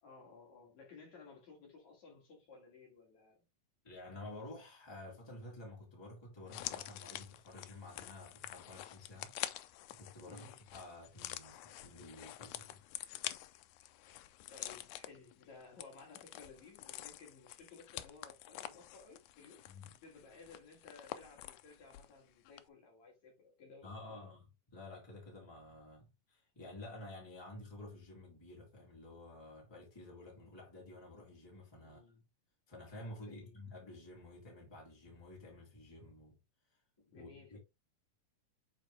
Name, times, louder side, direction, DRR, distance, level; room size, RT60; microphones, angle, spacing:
voice 1, 0.0-3.5 10.3-10.6 14.3-19.6 20.0-24.3 31.8-32.2 33.2-33.5 37.1-37.6, left 4 dB, 55° left, 3.5 m, -57 dB
voice 2, 3.8-9.3 9.9-12.8 19.6-19.9 23.8-32.0 32.7-36.4 37.0-37.6, left 2 dB, 10° left, 2.7 m, -51 dB
sound 1, 6.5-22.2 22.5-22.6, left 14 dB, 85° left, 1.7 m, -47 dB
7.8 x 4.2 x 3.2 m
omnidirectional pair, 3.9 m